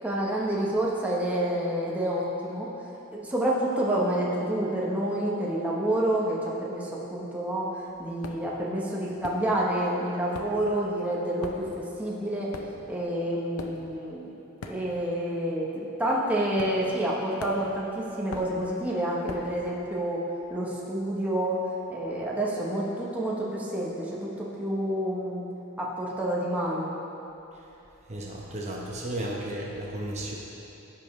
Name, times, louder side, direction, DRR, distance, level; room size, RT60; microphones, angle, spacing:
voice 1, 0.0-2.7 3.1-7.7 8.0-12.5 12.9-14.3 14.7-20.2 20.5-21.6 21.9-25.4 25.8-26.9, right 1 dB, 5° right, -5 dB, 1.0 m, -28 dB
sound 1, 8.2-8.6 9.2-9.9 10.1-15.3 15.5-15.8 16.6-17.1 17.4-19.6, left 3 dB, 80° left, 0.6 m, -42 dB
voice 2, 28.1-30.4, right 1 dB, 30° right, -3 dB, 0.9 m, -34 dB
15.5 x 5.2 x 3.2 m, 2.9 s
head